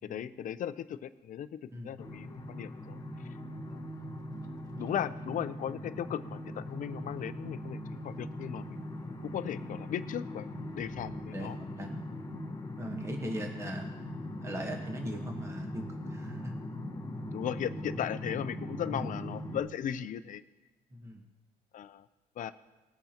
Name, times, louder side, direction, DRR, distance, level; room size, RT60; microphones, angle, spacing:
voice 1, 0.0-3.4 3.7-3.8 4.8-7.8 8.0-8.8 9.2-10.5 10.7-11.6 17.3-20.4 21.7-22.1 22.4-22.5, left 9 dB, 50° left, 12 dB, 0.6 m, -37 dB
voice 2, 1.7-2.0 3.7-3.8 9.0-9.1 11.3-12.3 12.8-13.9 14.4-16.5 18.9-19.1 20.9-21.2, equal, 15° right, 3 dB, 1.3 m, -40 dB
sound 1, 2.0-19.6, left 1 dB, 20° left, 1.3 m, -40 dB
20.0 x 8.1 x 2.9 m, 1.2 s
cardioid pair, 110°, 17 cm